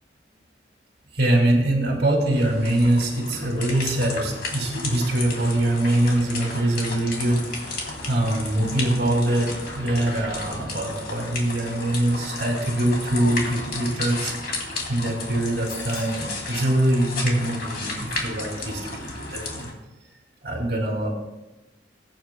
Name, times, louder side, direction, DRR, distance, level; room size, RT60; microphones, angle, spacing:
voice 1, 1.1-19.7 20.4-21.1, right 1 dB, 60° right, 1 dB, 2.3 m, -23 dB
sound 1, 2.3-19.7, left 3 dB, 55° left, 2.5 m, -33 dB
sound 2, 3.6-10.5, equal, 10° left, 3.5 m, -45 dB
sound 3, 15.7-16.3, left 4 dB, 90° left, 3.0 m, -40 dB
21.0 x 9.0 x 2.2 m, 1.0 s
head